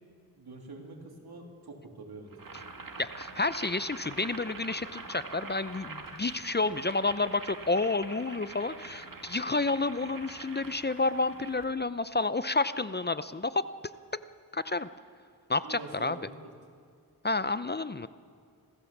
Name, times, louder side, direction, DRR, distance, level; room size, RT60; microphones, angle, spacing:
voice 1, 0.4-2.3 15.6-16.3, right 3 dB, 80° right, 1 dB, 3.2 m, -45 dB
Boiling, 2.3-11.7, right 3 dB, 60° right, 2.2 m, -45 dB
voice 2, 3.0-13.6 14.5-14.9 15.5-16.2 17.2-18.1, left 3 dB, 30° left, 14 dB, 0.7 m, -30 dB
26.0 x 15.5 x 7.3 m, 2.2 s
cardioid pair, 50°, 37 cm